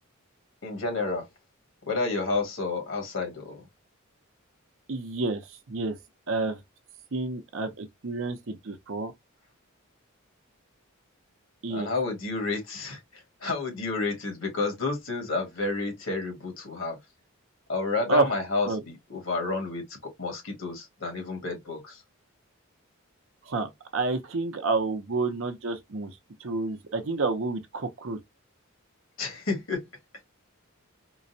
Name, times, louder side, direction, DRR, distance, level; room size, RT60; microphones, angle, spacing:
voice 1, 0.6-1.3 1.9-3.6 11.7-17.0 17.7-22.0 29.2-29.8, left 3 dB, 60° left, 1.5 m, -30 dB
voice 2, 4.9-5.4 5.7-6.0 6.3-6.6 7.1-9.1 11.6-11.9 18.1-18.3 18.7-18.8 23.4-26.1 26.4-28.2, right 3 dB, 60° right, 0.7 m, -29 dB
3.8 x 2.1 x 2.6 m
head